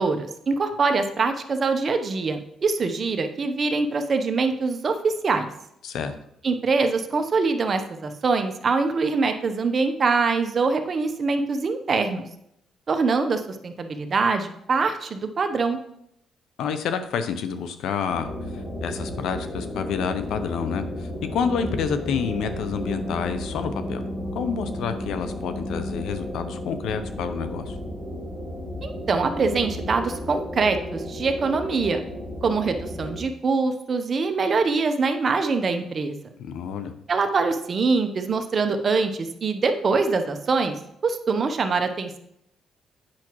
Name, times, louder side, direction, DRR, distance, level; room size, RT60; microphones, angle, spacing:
voice 1, 0.0-5.5 6.4-12.2 12.9-15.8 28.8-32.0 32.4-36.2 37.1-40.7 41.0-42.2, right 4 dB, 45° right, 7 dB, 0.8 m, -24 dB
voice 2, 16.6-18.3 18.8-24.0 24.3-27.8 36.4-36.9, left 6 dB, 80° left, 10 dB, 0.6 m, -28 dB
sound 1, 18.1-33.2, left 1 dB, 35° left, 1.9 m, -33 dB
8.8 x 5.8 x 3.0 m, 0.76 s
cardioid pair, 90°, 0 cm